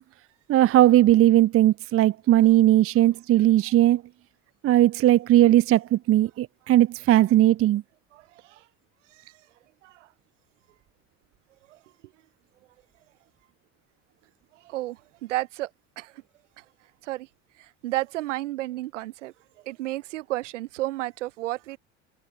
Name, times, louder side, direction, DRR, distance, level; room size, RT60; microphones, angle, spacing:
voice 1, 0.5-4.0 4.6-7.8, right 14 dB, 40° right, 0.6 m, -18 dB
voice 2, 8.1-8.6 9.1-9.2 9.8-10.1 11.7-11.8 14.6-15.7 16.0-16.2 16.6-16.7 17.0-17.3 17.6-19.3 19.7-21.8, right 17 dB, 80° right, 3.7 m, -32 dB
hypercardioid pair, 65°, 36 cm